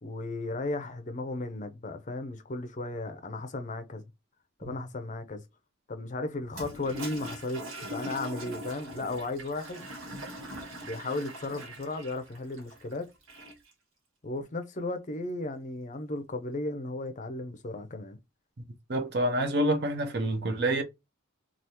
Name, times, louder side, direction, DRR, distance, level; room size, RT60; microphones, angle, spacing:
voice 1, 0.0-4.0 4.6-5.4 5.9-7.6 7.9-9.8 10.8-13.1 14.2-18.2 20.2-20.5, left 2 dB, 35° left, 0.5 m, -35 dB
Toilet flush, 6.5-13.7, right 1 dB, 85° right, 1.4 m, -42 dB
voice 2, 18.9-20.8, right 1 dB, 50° right, 0.7 m, -27 dB
3.4 x 2.4 x 2.8 m
head